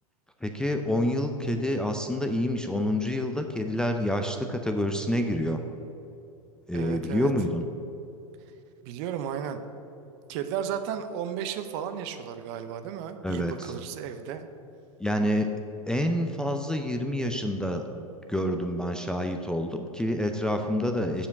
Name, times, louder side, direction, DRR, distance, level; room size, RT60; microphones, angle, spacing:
voice 1, 0.4-5.6 6.7-7.6 13.2-13.7 15.0-15.5 15.9-18.0 18.3-21.3, left 1 dB, 5° left, 4 dB, 0.4 m, -28 dB
voice 2, 6.7-7.3 8.8-9.6 10.3-14.4, right 9 dB, 45° right, 9 dB, 0.7 m, -34 dB
7.1 x 5.0 x 6.5 m, 2.8 s
hypercardioid pair, 100°, 19 cm